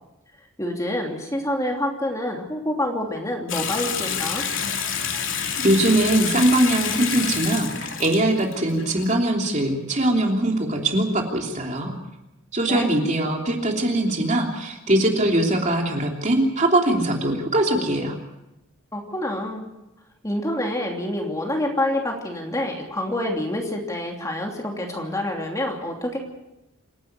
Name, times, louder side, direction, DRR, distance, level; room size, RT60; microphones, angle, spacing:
voice 1, 0.6-4.5 12.7-12.9 18.9-19.7 20.2-26.2, left 1 dB, 15° left, 1 dB, 3.0 m, -27 dB
Water tap faucet / Sink (filling or washing) / Bathtub (filling or washing), 3.5-9.1, left 7 dB, 65° left, 2.8 m, -28 dB
voice 2, 5.6-7.7 8.0-11.9 12.5-18.2, right 1 dB, 35° right, 1 dB, 3.2 m, -21 dB
27.5 x 11.5 x 9.6 m, 0.92 s
head